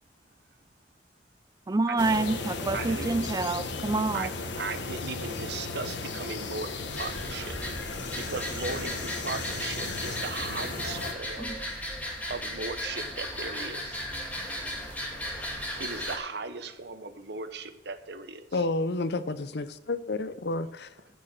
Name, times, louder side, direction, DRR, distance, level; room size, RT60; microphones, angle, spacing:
voice 1, 1.7-4.3, right 2 dB, 20° right, 0.4 m, -27 dB
sound 1, 2.0-11.1, left 3 dB, 80° left, 1.4 m, -35 dB
voice 2, 2.7-3.1 4.1-4.3 4.6-7.6 8.1-11.5 12.3-14.1 15.8-18.6, right 4 dB, 65° right, 1.1 m, -37 dB
sound 2, 6.9-16.2, left 1 dB, 10° left, 2.8 m, -36 dB
voice 3, 18.5-20.9, left 2 dB, 65° left, 0.7 m, -30 dB
11.5 x 6.7 x 7.5 m
head